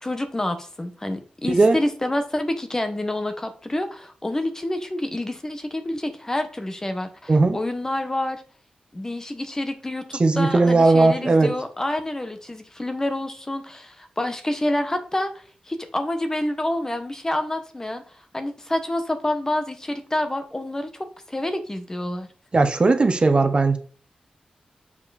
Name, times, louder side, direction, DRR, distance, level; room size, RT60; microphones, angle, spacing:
voice 1, 0.0-8.4 8.9-22.3, left 1 dB, 20° left, 1.2 m, -28 dB
voice 2, 10.2-11.5 22.5-23.8, right 3 dB, 40° right, 1.0 m, -17 dB
7.2 x 4.8 x 4.2 m
cardioid pair, 65°, 3 cm